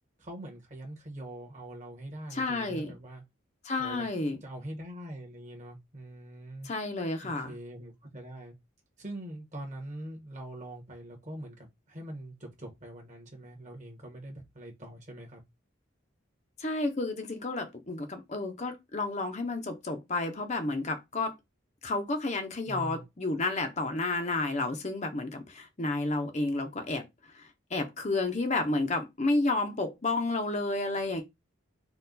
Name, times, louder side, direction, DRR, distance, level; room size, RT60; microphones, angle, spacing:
voice 1, 0.2-3.2 3.8-4.0 4.4-6.7 7.2-8.5 9.0-15.4 22.7-23.0, right 1 dB, 35° right, 1.4 m, -43 dB
voice 2, 2.3-2.9 3.6-4.4 6.6-7.5 16.6-21.3 21.8-27.0 27.3-31.2, left 2 dB, 35° left, 0.7 m, -31 dB
4.3 x 2.4 x 3.9 m
head